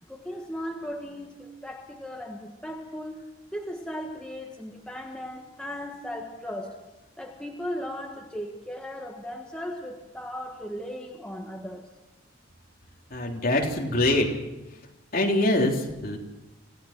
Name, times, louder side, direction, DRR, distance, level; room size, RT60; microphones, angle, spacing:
voice 1, 0.1-3.2 3.5-6.8 7.2-11.9, equal, 5° left, 0 dB, 1.5 m, -37 dB
voice 2, 13.1-14.3 15.1-16.2, left 1 dB, 45° left, 0 dB, 3.4 m, -24 dB
26.5 x 16.5 x 6.0 m, 1.0 s
head